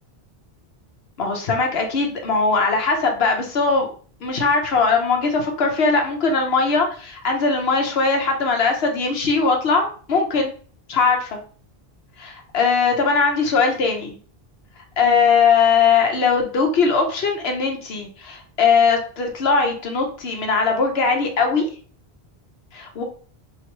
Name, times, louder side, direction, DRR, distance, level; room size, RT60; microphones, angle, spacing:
voice 1, 1.2-3.9 4.2-10.5 10.9-11.4 12.2-14.2 15.0-21.7 22.7-23.0, left 4 dB, 75° left, 3 dB, 1.1 m, -20 dB
3.0 x 3.0 x 4.5 m, 0.43 s
omnidirectional pair, 1.1 m